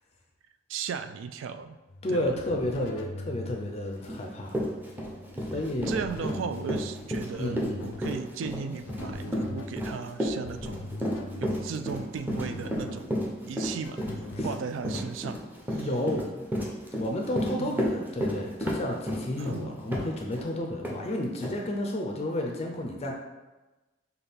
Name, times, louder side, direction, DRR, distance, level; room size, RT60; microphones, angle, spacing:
voice 1, 0.7-1.8 2.1-2.3 5.9-10.9 11.4-13.2 13.5-14.0 14.4-15.4 15.7-15.9 17.6-17.8 19.4-19.8, right 6 dB, 75° right, 10 dB, 0.3 m, -36 dB
sound 1, 1.9-14.5, left 2 dB, 90° left, 0.5 m, -43 dB
voice 2, 2.0-4.7 5.5-6.0 7.4-7.8 14.4-14.5 15.7-16.4 16.9-23.1, left 1 dB, 35° left, 1 dB, 0.5 m, -31 dB
Run, 4.1-4.2 4.5-20.5 20.8-21.0 21.4-21.5, equal, 10° right, 0.7 m, -31 dB
5.6 x 2.3 x 3.5 m, 1.1 s
head